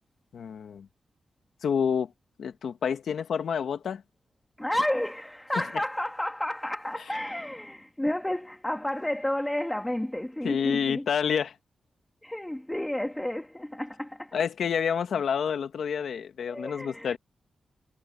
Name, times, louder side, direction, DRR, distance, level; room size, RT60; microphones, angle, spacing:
voice 1, 0.3-0.9 1.6-2.1 2.4-4.0 10.4-11.5 14.3-17.2, left 7 dB, 80° left, 1.6 m, -28 dB
voice 2, 4.6-11.1 12.2-14.3 16.5-17.2, left 1 dB, 5° left, 1.6 m, -31 dB
wide cardioid pair, 140°, 0 cm